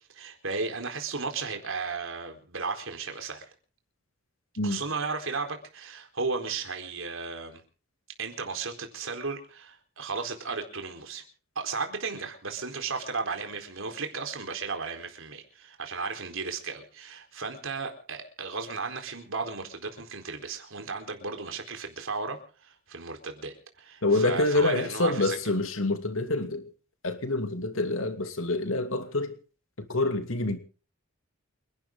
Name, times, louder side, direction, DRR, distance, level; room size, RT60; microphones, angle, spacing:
voice 1, 0.1-3.5 4.6-7.6 8.2-11.2 11.6-25.4, right 4 dB, 65° right, 4.2 m, -35 dB
voice 2, 24.0-26.6 27.0-29.3 29.9-30.6, left 2 dB, 70° left, 2.7 m, -27 dB
29.0 x 11.5 x 3.9 m
head